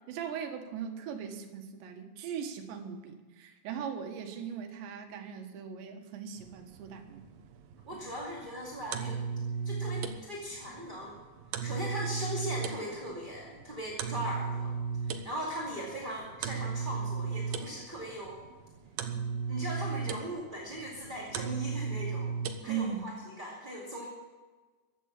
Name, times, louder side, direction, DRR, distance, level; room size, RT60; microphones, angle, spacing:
voice 1, 0.1-7.3 22.7-23.2, right 7 dB, 90° right, 5 dB, 3.7 m, -39 dB
sound 1, 6.4-23.1, right 5 dB, 70° right, 2.4 m, -37 dB
voice 2, 7.9-9.2 9.6-11.2 11.6-14.7 15.1-18.4 19.5-22.3 22.6-23.1 23.4-24.1, equal, 20° right, -5 dB, 1.5 m, -39 dB
15.0 x 11.0 x 7.3 m, 1.3 s
omnidirectional pair, 4.9 m